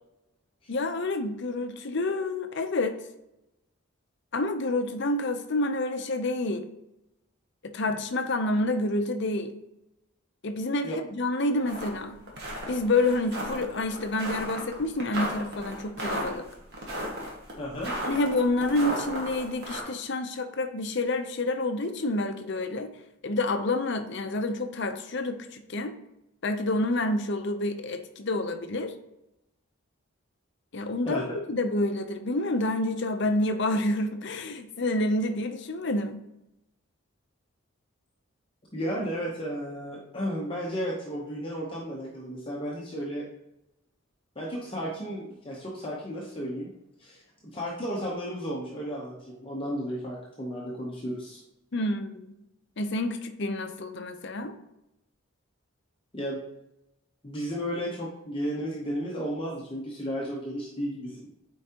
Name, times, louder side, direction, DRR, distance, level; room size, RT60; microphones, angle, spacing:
voice 1, 0.7-3.0 4.3-6.6 7.6-9.5 10.4-12.2 12.7-16.4 18.0-22.9 23.2-26.0 26.4-28.9 30.7-36.2 51.7-52.3 52.8-54.5, left 2 dB, 55° left, 8 dB, 0.6 m, -28 dB
sound 1, 11.7-11.9 12.3-19.8, equal, 50° right, 1.6 m, -34 dB
voice 2, 17.6-18.0 31.1-31.4 38.7-43.3 44.4-46.7 47.0-51.4 56.1-56.4 57.2-61.3, equal, 25° left, -3 dB, 0.9 m, -33 dB
8.5 x 4.6 x 2.9 m, 0.88 s
head